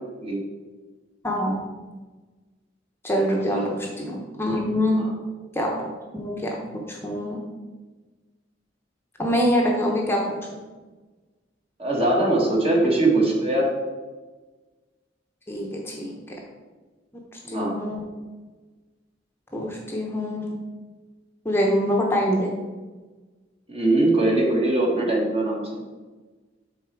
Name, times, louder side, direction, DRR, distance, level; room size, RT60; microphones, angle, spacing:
voice 1, 1.2-1.6 3.0-5.0 5.5-5.9 6.1-6.6 6.9-7.4 9.2-10.4 15.5-16.1 17.5-18.0 19.5-20.5 21.4-22.5, equal, 15° left, -1 dB, 0.8 m, -24 dB
voice 2, 11.8-13.7 17.5-17.8 23.7-25.7, right 2 dB, 35° right, -1 dB, 1.5 m, -21 dB
7.1 x 4.1 x 4.6 m, 1.3 s
head